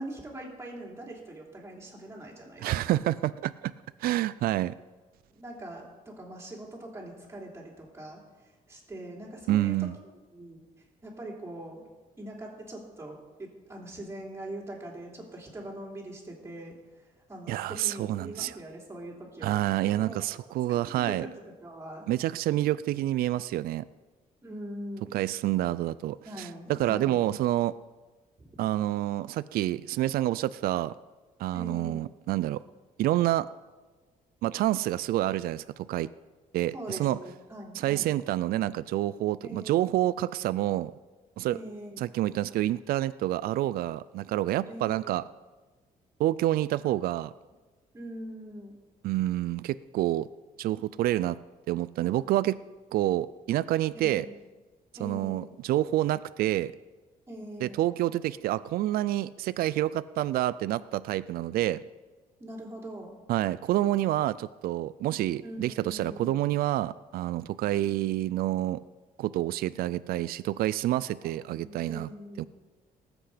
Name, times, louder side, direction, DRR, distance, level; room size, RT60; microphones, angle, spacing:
voice 1, 0.0-3.1 5.3-8.2 8.7-9.9 10.3-10.6 11.0-11.8 12.2-19.6 19.9-20.3 21.0-21.3 21.6-22.1 24.4-25.2 26.2-27.2 28.4-28.5 31.5-32.1 36.7-38.1 39.4-39.7 41.5-42.1 44.7-45.1 47.9-48.8 53.9-54.4 55.0-55.5 57.3-57.8 62.4-63.2 65.4-66.4 71.2-72.5, right 1 dB, 15° right, -2 dB, 3.4 m, -42 dB
voice 2, 2.6-3.7 4.0-4.7 9.5-9.9 17.5-18.6 19.4-21.3 22.1-23.8 25.1-27.7 28.6-30.9 31.4-32.6 33.0-33.5 34.4-36.1 36.5-37.2 37.7-40.9 41.4-41.6 42.0-45.2 46.2-47.3 49.0-50.3 50.6-51.4 51.7-52.6 52.9-54.3 55.0-56.7 57.6-61.8 63.3-68.8 69.2-72.1 72.4-72.5, right 14 dB, 80° right, 16 dB, 0.4 m, -28 dB
19.0 x 8.1 x 5.0 m, 1.3 s
cardioid pair, 135°, 15 cm